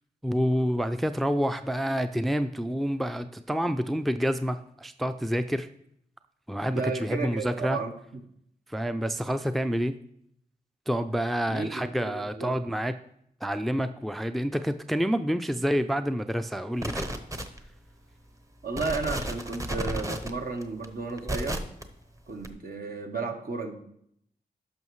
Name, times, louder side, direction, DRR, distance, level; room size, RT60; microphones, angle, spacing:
voice 1, 0.2-5.7 6.5-7.8 8.7-10.0 10.9-12.9 13.4-17.1, equal, ahead, 10 dB, 0.4 m, -28 dB
voice 2, 6.7-7.9 11.5-11.7 12.0-12.5 18.6-21.6 22.3-23.7, right 4 dB, 65° right, 4 dB, 1.1 m, -33 dB
sound 1, 16.8-17.8 18.3-18.4 18.7-21.8 22.4-22.5, right 1 dB, 20° right, 0.9 m, -32 dB
11.0 x 5.7 x 3.1 m, 0.72 s
cardioid pair, 55°, 17 cm